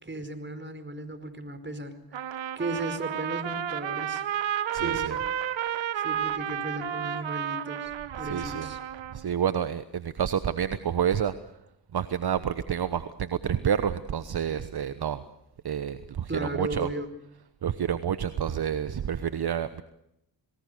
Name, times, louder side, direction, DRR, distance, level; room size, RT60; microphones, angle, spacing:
voice 1, 0.0-2.0 2.5-4.2 4.7-5.2 6.0-7.9 8.2-8.8 16.3-17.1, right 1 dB, 25° right, 10 dB, 4.9 m, -35 dB
Trumpet, 2.1-9.3, right 10 dB, 70° right, 1.4 m, -32 dB
voice 2, 4.7-5.2 8.2-8.7 9.1-11.3 11.9-15.2 15.6-16.9 17.6-19.8, right 8 dB, 55° right, 12 dB, 1.2 m, -29 dB
26.5 x 20.0 x 6.8 m, 0.81 s
supercardioid pair, 50°, 47 cm